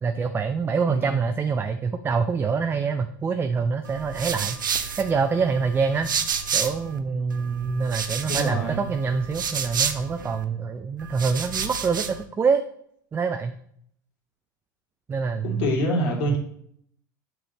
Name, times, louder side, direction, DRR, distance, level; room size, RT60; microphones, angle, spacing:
voice 1, 0.0-4.6 5.0-6.1 6.5-12.6 13.1-13.5 15.1-16.0 16.3-16.4, right 5 dB, 20° right, 7 dB, 0.5 m, -25 dB
voice 2, 0.9-1.2 8.2-8.9 15.4-16.4, right 1 dB, 60° left, -1 dB, 2.5 m, -26 dB
sound 1, 3.8-7.0 7.3-10.4 11.0-12.2, right 7 dB, 90° right, 0.6 m, -30 dB
7.6 x 6.2 x 3.0 m, 0.66 s
hypercardioid pair, 85°, 10 cm